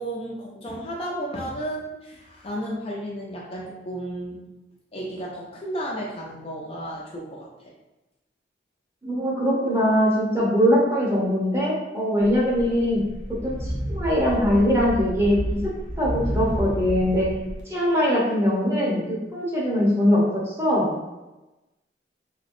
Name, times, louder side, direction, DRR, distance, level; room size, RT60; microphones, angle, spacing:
voice 1, 0.0-4.4 4.9-7.5, right 1 dB, 30° left, -4 dB, 0.4 m, -33 dB
voice 2, 9.0-13.0 13.4-15.7 16.0-17.3 17.7-21.0, equal, 15° right, -6 dB, 0.9 m, -22 dB
sound 1, 12.2-17.6, equal, 85° right, 0.9 m, -30 dB
3.3 x 3.1 x 2.6 m, 1.0 s
head